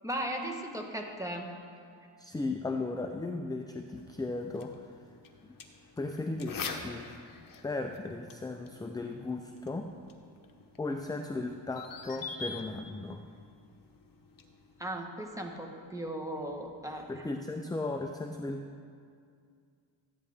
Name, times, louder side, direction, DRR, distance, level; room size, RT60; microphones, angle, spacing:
voice 1, 0.0-1.5 14.8-17.1, right 1 dB, 5° right, 2 dB, 1.2 m, -37 dB
voice 2, 2.2-4.9 6.0-7.1 7.6-9.9 10.8-13.2 16.9-18.9, left 2 dB, 10° left, 4 dB, 0.4 m, -36 dB
sound 1, 3.9-15.0, left 4 dB, 45° left, 1.0 m, -46 dB
14.0 x 10.0 x 3.5 m, 2.3 s
cardioid pair, 115°, 47 cm